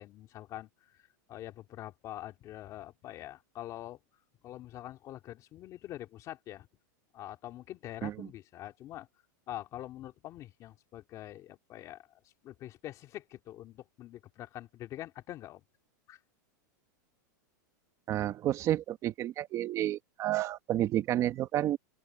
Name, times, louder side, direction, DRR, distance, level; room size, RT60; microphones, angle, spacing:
voice 1, 0.0-4.0 4.4-6.7 7.1-9.1 9.5-12.1 12.4-15.6 16.1-16.2, left 13 dB, 30° left, 2.3 m, -45 dB
voice 2, 18.1-21.8, right 13 dB, 30° right, 1.6 m, -30 dB
open air
supercardioid pair, 150°, 10 cm